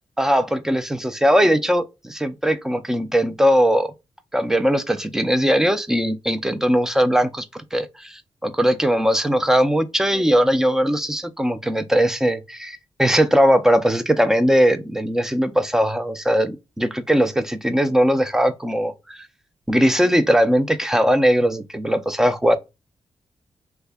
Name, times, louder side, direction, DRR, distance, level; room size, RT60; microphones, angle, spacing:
voice 1, 0.2-3.9 4.3-19.2 19.7-22.5, equal, 5° right, 0.3 m, -19 dB
3.4 x 2.1 x 3.3 m
wide cardioid pair, 170°, 11 cm